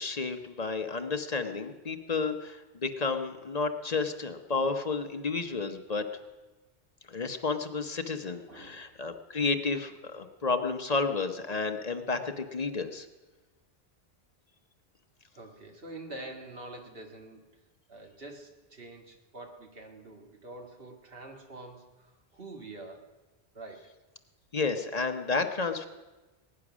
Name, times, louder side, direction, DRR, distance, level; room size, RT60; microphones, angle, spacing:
voice 1, 0.0-6.1 7.1-13.1 24.5-25.9, left 4 dB, 40° left, 6 dB, 1.0 m, -31 dB
voice 2, 8.5-9.0 15.3-17.6 17.9-23.1 23.5-23.9, right 2 dB, 60° right, 2 dB, 2.1 m, -46 dB
20.5 x 9.8 x 6.2 m, 1.2 s
omnidirectional pair, 1.1 m